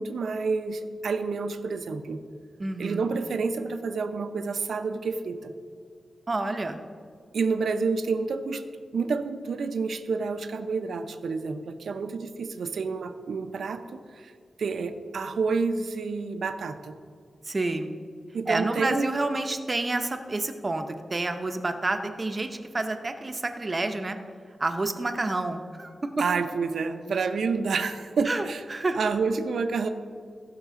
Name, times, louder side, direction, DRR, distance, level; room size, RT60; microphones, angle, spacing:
voice 1, 0.0-2.2 2.8-5.5 7.3-8.6 8.9-14.3 14.6-16.9 18.3-19.2 26.2-28.6 28.9-29.9, right 4 dB, 80° right, 8 dB, 0.6 m, -29 dB
voice 2, 2.6-3.1 6.3-6.8 17.4-17.9 18.5-24.2 24.6-26.2 28.2-28.4 28.7-29.0, right 2 dB, 30° right, 6 dB, 0.7 m, -29 dB
17.5 x 5.9 x 3.7 m, 2.1 s
wide cardioid pair, 120°, 0 cm